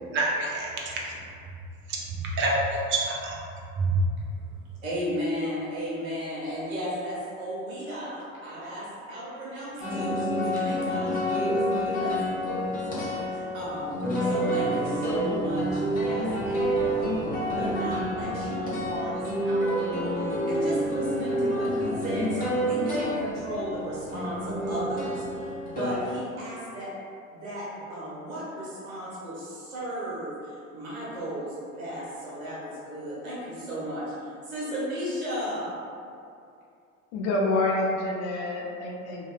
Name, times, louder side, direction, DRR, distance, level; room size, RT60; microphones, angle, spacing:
voice 1, 0.1-1.1 1.9-2.0 2.4-3.3 3.8-4.0, right 2 dB, 30° right, -3 dB, 0.6 m, -26 dB
voice 2, 4.8-26.9 27.3-35.8, equal, 80° right, -8 dB, 1.2 m, -35 dB
sound 1, 9.8-26.0, equal, 20° left, 1.1 m, -28 dB
voice 3, 37.1-39.3, left 2 dB, 40° left, -1 dB, 0.5 m, -27 dB
2.9 x 2.8 x 2.3 m, 2.4 s
figure-of-eight pair, 80°, 41 cm